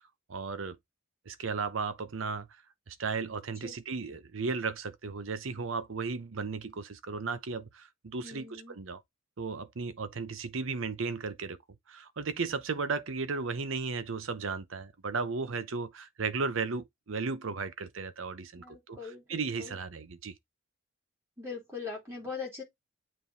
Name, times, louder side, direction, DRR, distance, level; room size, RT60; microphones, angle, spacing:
voice 1, 0.3-0.8 1.3-2.5 2.9-9.0 9.4-11.6 11.9-20.3, right 4 dB, 70° right, 0.7 m, -35 dB
voice 2, 8.2-8.8 18.5-19.8 21.4-22.6, left 5 dB, 10° right, 3.1 m, -41 dB
7.6 x 3.1 x 4.1 m
head